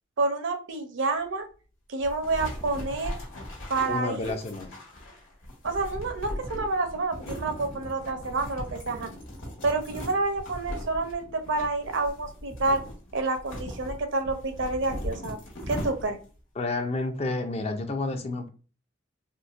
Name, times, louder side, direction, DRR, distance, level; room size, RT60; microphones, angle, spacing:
voice 1, 0.2-1.5 1.9-3.2 3.7-4.4 5.6-9.1 9.6-12.8 13.1-15.4 15.7-16.2, right 3 dB, 70° right, 7 dB, 0.6 m, -28 dB
sound 1, 2.0-16.4, equal, 85° left, 1.2 m, -39 dB
voice 2, 3.9-4.7 16.6-18.5, left 2 dB, 35° left, 7 dB, 0.4 m, -30 dB
3.8 x 2.1 x 2.4 m, 0.36 s
head